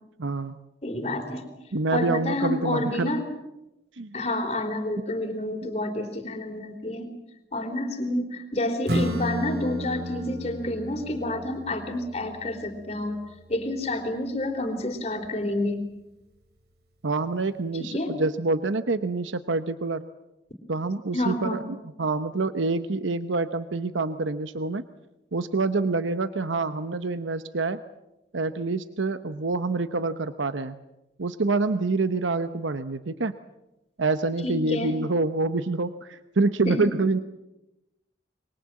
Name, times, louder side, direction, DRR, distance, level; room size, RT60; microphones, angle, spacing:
voice 1, 0.2-0.6 1.7-3.1 3.9-4.2 5.0-5.1 17.0-20.0 20.7-24.8 25.3-27.8 28.3-30.8 31.2-33.3 34.0-37.2, right 3 dB, 90° right, 11 dB, 0.9 m, -26 dB
voice 2, 0.8-1.4 1.9-3.2 4.1-7.1 7.5-13.2 13.5-15.8 17.8-18.1 21.1-21.6 34.4-34.9 36.7-36.8, left 1 dB, 35° left, 4 dB, 3.7 m, -29 dB
Acoustic guitar / Strum, 8.9-14.1, equal, 55° right, 3.5 m, -33 dB
26.0 x 23.5 x 7.7 m, 0.95 s
head